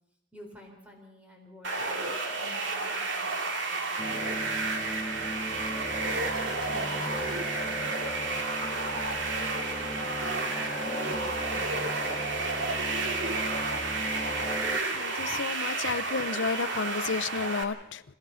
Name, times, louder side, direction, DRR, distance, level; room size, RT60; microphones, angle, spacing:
voice 1, 0.3-4.6 5.1-5.5 6.3-7.9 8.6-13.2, equal, 5° right, 1 dB, 3.8 m, -51 dB
sound 1, 1.6-17.6, right 3 dB, 90° right, 2.4 m, -31 dB
sound 2, 4.0-14.8, left 1 dB, 15° left, 0.9 m, -38 dB
sound 3, 6.3-9.6, right 1 dB, 25° right, 4.4 m, -49 dB
voice 2, 14.9-18.0, left 5 dB, 90° left, 14 dB, 0.7 m, -32 dB
28.5 x 16.0 x 5.7 m, 0.86 s
head